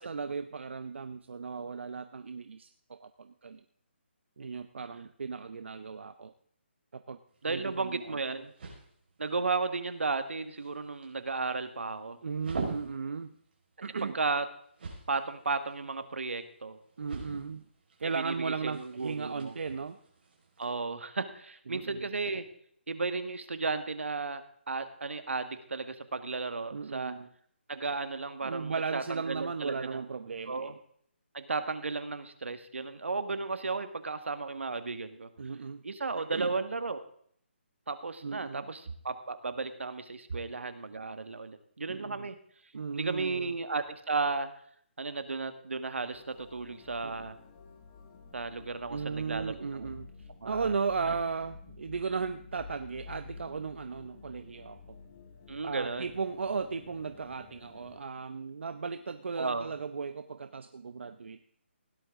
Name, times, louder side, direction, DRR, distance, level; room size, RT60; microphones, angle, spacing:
voice 1, 0.0-3.6 4.4-6.3 6.9-7.2 7.5-8.2 12.2-13.3 13.8-14.2 17.0-17.6 18.0-20.0 21.7-22.1 26.7-27.3 28.4-30.7 35.4-35.8 36.3-36.5 38.2-38.7 41.9-42.3 42.7-43.5 47.0-47.1 48.9-55.0 55.6-61.4, right 5 dB, 70° right, 10 dB, 0.8 m, -36 dB
sound 1, 7.3-20.7, right 4 dB, 55° right, 4.9 m, -46 dB
voice 2, 7.4-8.5 9.2-12.2 14.0-14.5 15.1-16.8 18.0-19.5 20.6-22.5 22.9-27.2 27.7-30.0 30.5-30.8 31.3-35.3 35.8-37.0 37.9-42.4 42.9-44.6 45.0-47.4 48.3-49.9 50.4-50.7 51.1-51.2 55.5-56.1 59.3-59.7, right 4 dB, 90° right, 11 dB, 1.6 m, -34 dB
sound 2, 46.1-58.0, left 5 dB, 25° left, 1.9 m, -51 dB
17.0 x 11.0 x 3.7 m, 0.63 s
hypercardioid pair, 165°, 7 cm